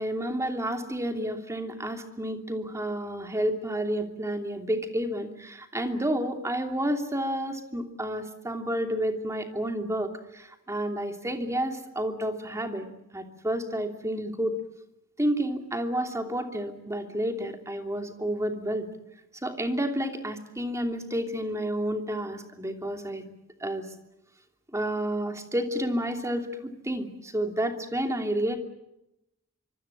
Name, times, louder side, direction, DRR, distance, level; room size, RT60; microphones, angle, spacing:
voice 1, 0.0-12.9 13.1-14.6 15.2-18.9 19.4-23.2 23.6-23.9 24.7-28.6, right 1 dB, 15° right, 5 dB, 2.9 m, -30 dB
25.5 x 25.5 x 7.4 m, 0.87 s
head